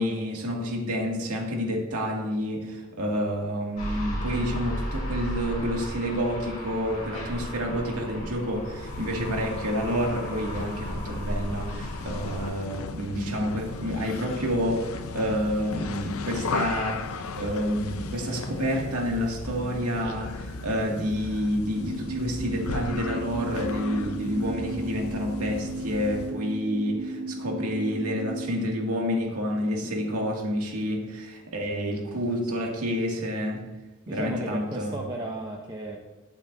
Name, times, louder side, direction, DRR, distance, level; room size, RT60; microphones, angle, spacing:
voice 1, 0.0-33.6 34.1-35.0, equal, 85° right, 0 dB, 2.3 m, -29 dB
sound 1, 3.8-12.5, equal, 35° left, 3.6 m, -35 dB
sound 2, 8.7-26.4, left 4 dB, 75° left, 0.7 m, -36 dB
sound 3, 21.8-28.6, right 2 dB, 60° right, 3.1 m, -35 dB
voice 2, 34.1-36.0, right 2 dB, 20° right, -1 dB, 0.8 m, -35 dB
21.0 x 7.1 x 2.7 m, 1.1 s
head